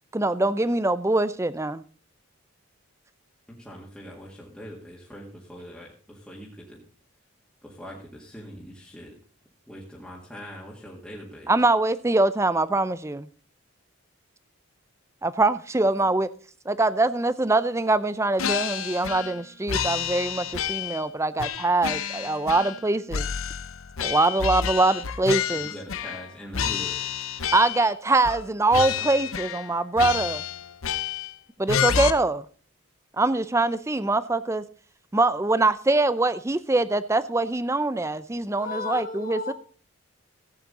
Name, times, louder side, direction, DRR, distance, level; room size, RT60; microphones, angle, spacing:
voice 1, 0.1-1.8 11.5-13.3 15.2-16.3 16.7-23.3 24.0-25.7 27.5-30.4 31.6-32.5 33.2-34.6 35.1-39.5, right 2 dB, 15° right, 0.4 m, -23 dB
voice 2, 3.5-6.8 7.6-9.1 9.7-11.5 25.5-27.0, equal, 5° left, 2.0 m, -42 dB
sound 1, 18.4-19.4 19.7-21.0 21.4-22.8 23.1-26.3 26.5-27.9 28.2-28.4 28.7-29.7 30.0-31.3 31.7-32.1, left 8 dB, 70° left, 0.7 m, -29 dB
voice 3, 38.6-39.5, left 4 dB, 40° left, 1.3 m, -33 dB
14.5 x 8.7 x 4.1 m
head